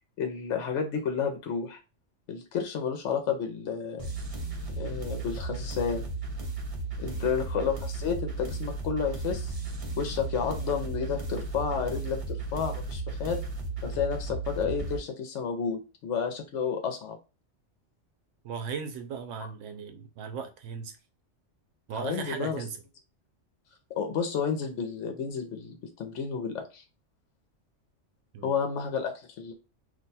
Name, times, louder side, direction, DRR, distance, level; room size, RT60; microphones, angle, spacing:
voice 1, 0.2-1.8 2.3-4.1 4.8-6.1 7.0-9.5 10.0-12.2 12.5-13.4 13.8-17.2 21.9-22.6 24.0-26.8 28.4-29.5, left 6 dB, 75° left, 1.0 m, -31 dB
sound 1, 4.0-15.0, right 3 dB, 35° right, 0.7 m, -35 dB
voice 2, 7.0-7.3 18.4-21.0 21.9-22.8 28.3-28.7, right 6 dB, 85° right, 0.9 m, -37 dB
2.6 x 2.2 x 4.0 m
omnidirectional pair, 1.2 m